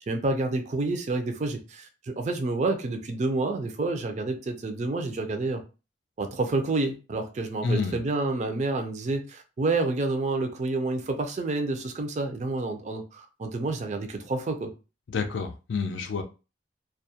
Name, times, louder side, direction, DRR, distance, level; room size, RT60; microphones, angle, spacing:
voice 1, 0.1-5.6 6.2-14.7, right 2 dB, 40° right, 5 dB, 0.4 m, -29 dB
voice 2, 7.6-8.0 15.1-16.2, left 4 dB, 90° left, 6 dB, 0.4 m, -28 dB
2.3 x 2.1 x 2.7 m, 0.31 s
head